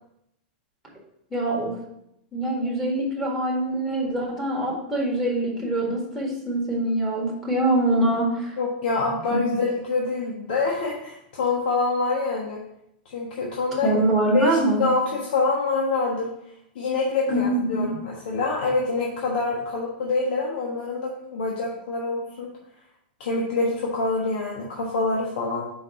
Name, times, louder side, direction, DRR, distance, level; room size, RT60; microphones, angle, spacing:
voice 1, 1.3-1.8 2.3-8.6 9.3-9.4 13.8-14.9 17.3-17.9, right 1 dB, 5° left, -3 dB, 1.8 m, -24 dB
voice 2, 8.6-12.6 13.0-14.0 14.3-16.3 16.7-22.5 23.2-25.6, left 3 dB, 70° left, -3 dB, 1.3 m, -26 dB
5.2 x 4.6 x 5.6 m, 0.79 s
supercardioid pair, 150°, 5 cm